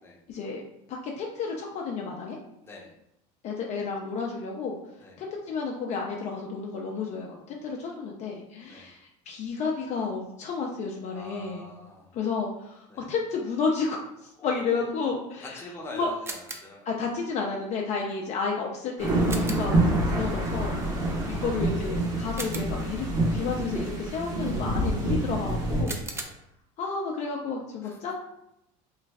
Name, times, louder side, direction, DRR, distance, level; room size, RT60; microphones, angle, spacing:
voice 1, 0.3-2.4 3.4-4.8 5.2-11.7 12.1-15.6 15.9-16.1 16.9-23.1 23.3-26.0 26.8-28.1, left 4 dB, 45° left, 0 dB, 0.5 m, -31 dB
voice 2, 2.6-2.9 5.0-5.2 8.7-8.9 11.1-12.2 12.9-13.1 14.4-14.9 15.4-17.0 21.0-21.3 25.8-26.4 27.8-28.0, left 2 dB, 15° left, -2 dB, 0.7 m, -45 dB
sound 1, 16.2-16.8 19.3-19.8 22.4-23.0 25.9-26.2, right 3 dB, 15° right, 0.4 m, -38 dB
sound 2, 19.0-25.8, right 1 dB, 55° right, 1.2 m, -27 dB
3.1 x 2.3 x 3.4 m, 0.80 s
cardioid pair, 130°, 16 cm